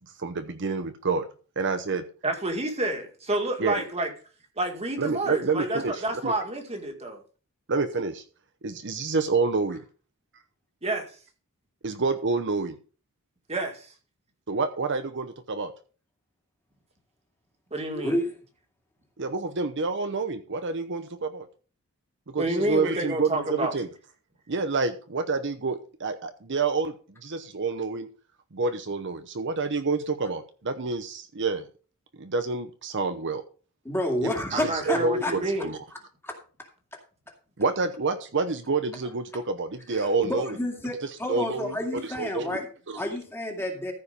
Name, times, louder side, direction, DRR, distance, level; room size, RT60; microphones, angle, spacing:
voice 1, 0.2-1.3 1.6-2.0 3.6-3.8 5.0-6.3 7.7-8.2 8.6-9.8 11.8-12.8 14.5-15.7 19.2-21.5 22.3-23.9 24.5-26.9 27.2-28.1 28.5-31.7 32.2-33.4 34.2-35.8 37.6-40.6 41.0-42.6 42.9-43.0, right 4 dB, 55° right, 9 dB, 0.9 m, -28 dB
voice 2, 2.2-4.1 4.6-7.2 10.8-11.1 13.5-13.9 17.7-18.1 22.4-23.7 34.5-35.7, right 1 dB, 30° right, 4 dB, 2.1 m, -29 dB
voice 3, 17.9-18.3 33.8-35.3 36.2-36.4 36.9-37.0 39.9-42.7 42.9-43.9, left 1 dB, 10° left, 2 dB, 2.3 m, -30 dB
14.5 x 5.1 x 5.3 m, 0.38 s
head